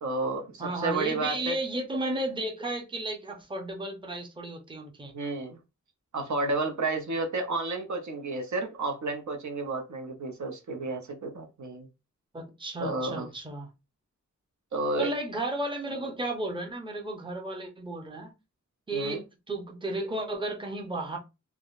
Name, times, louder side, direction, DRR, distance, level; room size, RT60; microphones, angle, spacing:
voice 1, 0.0-1.6 5.1-5.6 6.1-11.9 12.8-13.3 14.7-15.1 18.9-19.2, right 2 dB, 65° right, 0.7 m, -31 dB
voice 2, 0.6-5.1 12.3-13.7 15.0-18.3 18.9-21.2, right 1 dB, 15° right, 0.7 m, -33 dB
3.4 x 2.1 x 2.4 m
wide cardioid pair, 85°, 31 cm